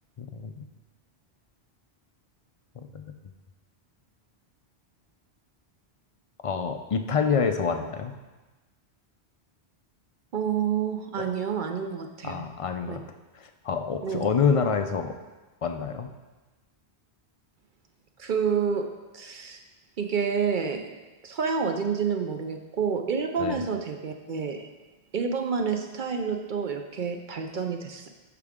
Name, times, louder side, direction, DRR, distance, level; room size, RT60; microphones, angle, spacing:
voice 1, 0.2-0.6 2.9-3.0 6.4-8.1 11.2-11.3 12.2-13.0 13.4-15.1 15.6-16.1 23.4-23.6, left 6 dB, 50° left, 6 dB, 0.4 m, -27 dB
voice 2, 10.3-12.4 12.9-13.0 14.0-14.3 18.2-18.9 19.1-19.6 20.0-20.9 21.2-24.7 25.1-28.1, right 6 dB, 55° right, 5 dB, 0.7 m, -28 dB
11.5 x 4.8 x 3.6 m, 1.2 s
omnidirectional pair, 1.1 m